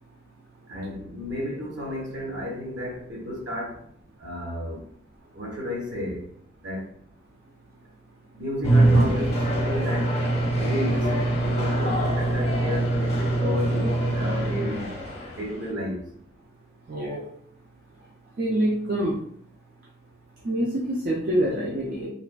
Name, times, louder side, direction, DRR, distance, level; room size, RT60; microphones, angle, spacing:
voice 1, 0.7-3.8 4.2-4.8 5.3-6.4 6.6-6.9 8.3-10.2 10.5-16.1, left 1 dB, 80° right, -2 dB, 1.1 m, -32 dB
sound 1, 8.6-15.7, right 1 dB, 35° left, 0.7 m, -23 dB
voice 2, 16.9-17.2 18.4-19.2 20.4-22.1, right 1 dB, 50° right, -4 dB, 0.5 m, -25 dB
3.3 x 2.4 x 2.2 m, 0.64 s
head